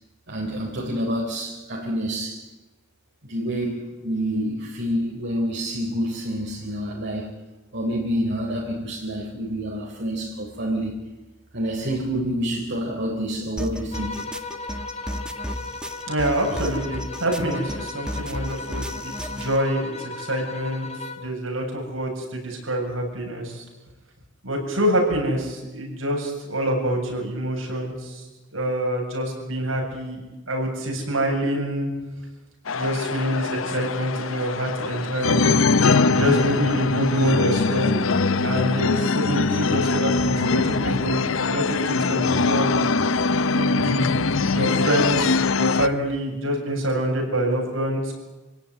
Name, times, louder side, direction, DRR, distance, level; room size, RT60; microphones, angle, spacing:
voice 1, 0.3-2.4 3.3-7.3 7.7-11.0 11.5-14.2, equal, 60° right, -2 dB, 3.9 m, -27 dB
sound 1, 13.6-19.6, equal, 5° right, 1.5 m, -33 dB
sound 2, 13.9-21.4, left 3 dB, 30° left, 2.0 m, -36 dB
voice 2, 16.1-20.9 21.2-23.6 24.4-28.2 28.5-31.9 32.7-35.6 36.1-38.0 38.4-42.9 43.5-48.2, equal, 85° right, 1 dB, 7.9 m, -26 dB
sound 3, 32.7-45.9, left 4 dB, 75° left, 0.8 m, -22 dB
27.0 x 17.0 x 9.7 m, 1.1 s
head